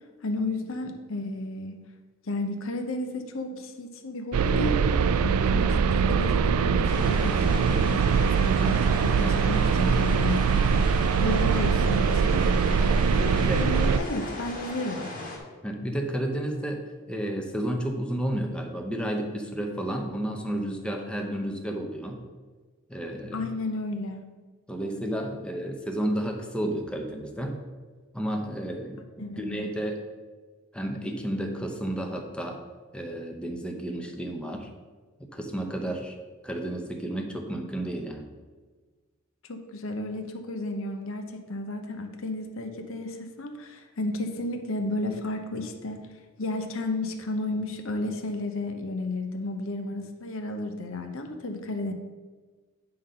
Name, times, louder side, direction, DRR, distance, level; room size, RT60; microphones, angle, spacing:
voice 1, 0.2-1.8 2.3-4.8 5.2-12.5 13.1-15.1 23.3-24.2 29.2-29.7 39.5-46.0 46.4-51.9, left 2 dB, 65° left, 5 dB, 0.8 m, -33 dB
sound 1, 4.3-14.0, right 6 dB, 90° right, 0.4 m, -23 dB
sound 2, 6.8-15.4, left 2 dB, 40° left, 1.6 m, -38 dB
voice 2, 13.3-13.7 15.6-16.8 17.1-22.2 22.9-23.5 24.7-27.6 28.1-29.0 29.4-30.0 30.7-32.6 32.9-34.7 35.2-36.2 36.4-38.3, right 1 dB, 5° left, 2 dB, 0.8 m, -31 dB
9.4 x 3.8 x 5.5 m, 1.4 s
head